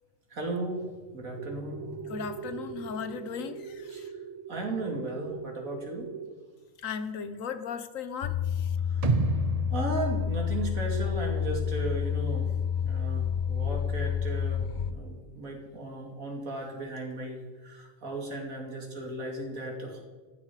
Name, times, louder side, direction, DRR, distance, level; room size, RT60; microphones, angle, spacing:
voice 1, 0.3-0.8 1.1-2.2 2.8-2.9 3.9-4.0 4.5-6.1 8.9-9.1 9.7-12.5 12.8-20.0, right 2 dB, 90° right, 0 dB, 3.0 m, -36 dB
sound 1, 1.4-6.3, right 7 dB, 70° right, 1.0 m, -42 dB
voice 2, 2.1-4.1 6.8-8.8, left 6 dB, 75° left, 11 dB, 1.3 m, -37 dB
sound 2, 8.2-14.9, left 8 dB, 55° left, 0.6 m, -29 dB
sound 3, 9.0-11.2 11.5-11.6, right 5 dB, 50° right, 0.4 m, -31 dB
14.5 x 9.9 x 4.9 m, 1.4 s
omnidirectional pair, 1.4 m